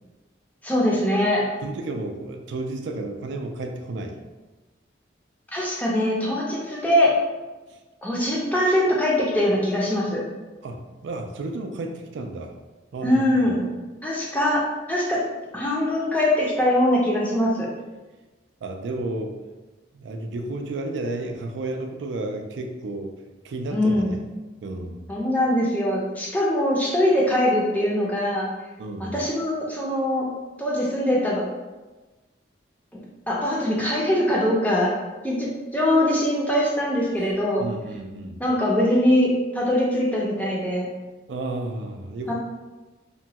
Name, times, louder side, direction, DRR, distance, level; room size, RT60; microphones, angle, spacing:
voice 1, 0.6-1.5 5.5-7.2 8.0-10.2 13.0-13.7 14.0-15.2 15.5-17.7 23.7-24.1 25.1-28.5 29.0-30.3 30.6-31.4 33.3-34.9 35.2-37.7 38.4-40.9 42.3-42.4, left 1 dB, 10° left, -4 dB, 0.5 m, -22 dB
voice 2, 1.6-4.2 7.7-7.8 10.6-12.5 12.9-13.5 18.6-19.4 19.9-23.1 23.4-24.2 24.6-25.1 28.8-29.1 37.6-38.4 41.3-42.3, right 2 dB, 75° right, 4 dB, 0.4 m, -32 dB
2.9 x 2.2 x 2.8 m, 1.2 s
head